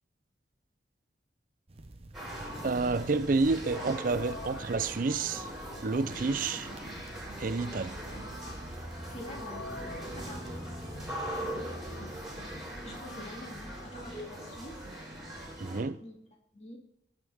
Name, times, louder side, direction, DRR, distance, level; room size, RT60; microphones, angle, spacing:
sound 1, 1.7-12.0, right 1 dB, 35° right, 0.8 m, -51 dB
sound 2, 2.1-15.8, equal, ahead, 3.8 m, -40 dB
voice 1, 2.6-5.5 5.8-6.7 7.4-8.0 15.6-16.0, right 3 dB, 50° right, 0.5 m, -29 dB
voice 2, 9.1-9.7 10.1-10.5 11.5-12.0 12.8-14.8 16.0-16.2 16.5-16.8, left 1 dB, 35° left, 2.5 m, -46 dB
19.0 x 6.6 x 3.5 m
head